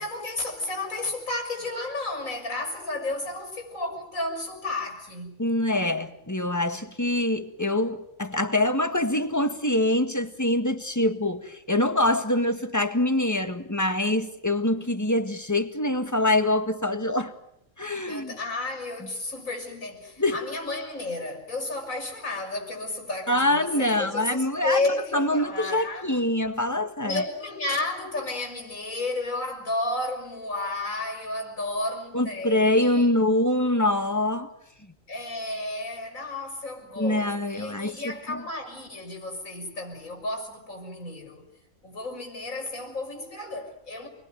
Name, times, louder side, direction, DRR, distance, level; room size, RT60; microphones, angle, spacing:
voice 1, 0.0-5.4 18.1-26.1 27.0-33.1 35.1-41.5 41.8-44.1, left 2 dB, 85° left, 6.7 m, -32 dB
voice 2, 5.4-17.3 17.8-18.3 19.0-19.1 20.2-20.4 23.3-27.2 32.1-34.5 34.8-34.9 37.0-38.4, left 1 dB, 15° left, 1.8 m, -25 dB
28.5 x 21.5 x 9.1 m
omnidirectional pair, 1.4 m